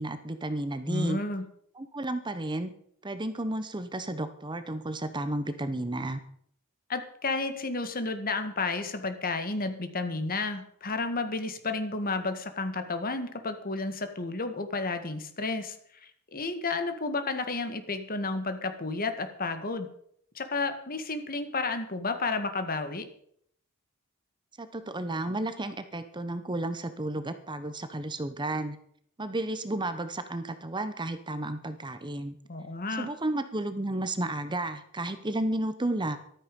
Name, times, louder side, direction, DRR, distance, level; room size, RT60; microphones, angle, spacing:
voice 1, 0.0-1.2 1.8-2.7 3.0-6.2 24.6-28.8 29.2-32.4 33.0-36.2, right 1 dB, 20° right, 11 dB, 0.9 m, -32 dB
voice 2, 0.9-1.4 6.9-15.8 16.3-19.9 20.4-23.0 32.5-33.1, left 3 dB, 40° left, 8 dB, 1.7 m, -31 dB
14.5 x 12.5 x 5.3 m, 0.65 s
head